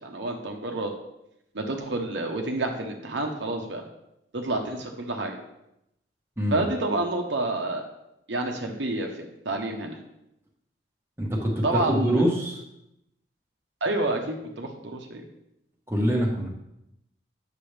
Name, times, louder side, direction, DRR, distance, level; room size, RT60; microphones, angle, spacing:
voice 1, 0.0-0.9 1.5-3.8 4.3-5.4 6.5-7.9 8.3-10.0 11.6-12.2 13.8-15.2, right 2 dB, 70° right, 2 dB, 1.0 m, -29 dB
voice 2, 11.2-12.6 15.9-16.5, equal, 15° right, -2 dB, 1.2 m, -25 dB
8.7 x 6.8 x 3.4 m, 0.84 s
head